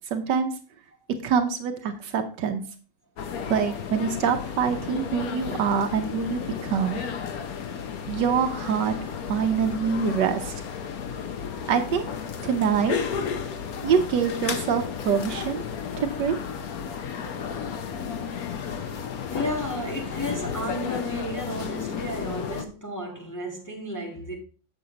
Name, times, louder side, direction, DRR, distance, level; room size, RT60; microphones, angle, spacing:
voice 1, 0.1-0.5 1.2-2.6 3.5-7.0 8.1-8.9 9.3-10.5 11.7-12.1 12.4-13.0 13.8-15.6 16.0-16.4, right 6 dB, 80° right, 1.4 m, -25 dB
sound 1, 3.2-22.7, left 7 dB, 60° left, 1.2 m, -33 dB
voice 2, 19.3-24.3, equal, 10° left, 1.6 m, -33 dB
7.7 x 6.8 x 3.9 m
omnidirectional pair, 1.9 m